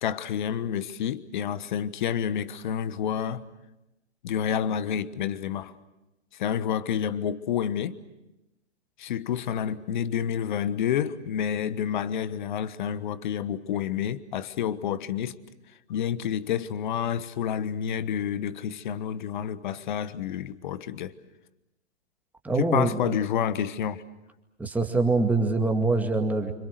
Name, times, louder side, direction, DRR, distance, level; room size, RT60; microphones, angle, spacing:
voice 1, 0.0-3.4 4.2-5.7 6.3-8.0 9.0-15.4 15.9-21.1 22.6-24.0, left 9 dB, 40° left, 1.3 m, -29 dB
voice 2, 22.4-23.2 24.6-26.5, right 3 dB, 5° right, 2.1 m, -24 dB
29.5 x 27.0 x 6.6 m
figure-of-eight pair, 120°, 35 cm